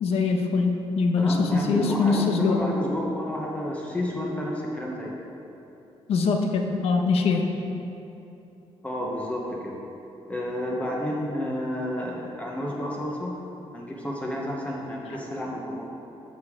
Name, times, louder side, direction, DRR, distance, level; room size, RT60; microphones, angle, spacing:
voice 1, 0.0-2.6 6.1-7.5, left 4 dB, 70° left, 4 dB, 0.9 m, -23 dB
voice 2, 1.2-5.2 8.8-9.8 10.3-13.3 13.7-16.0, left 1 dB, 15° left, -3 dB, 0.9 m, -30 dB
12.0 x 6.5 x 3.6 m, 2.9 s
cardioid pair, 160°, 11 cm